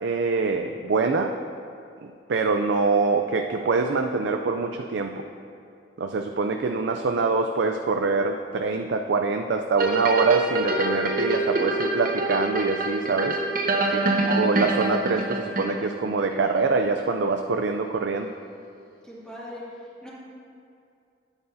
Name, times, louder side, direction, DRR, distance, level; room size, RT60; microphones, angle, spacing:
voice 1, 0.0-1.4 2.0-5.3 6.0-13.4 13.9-18.3, right 4 dB, 80° right, 4 dB, 0.4 m, -24 dB
sound 1, 9.8-16.1 16.6-16.7, right 2 dB, 55° right, 0.9 m, -25 dB
voice 2, 13.8-14.2 19.0-19.7 20.0-20.1, left 1 dB, 5° left, -7 dB, 2.1 m, -41 dB
12.5 x 9.0 x 2.7 m, 2.5 s
head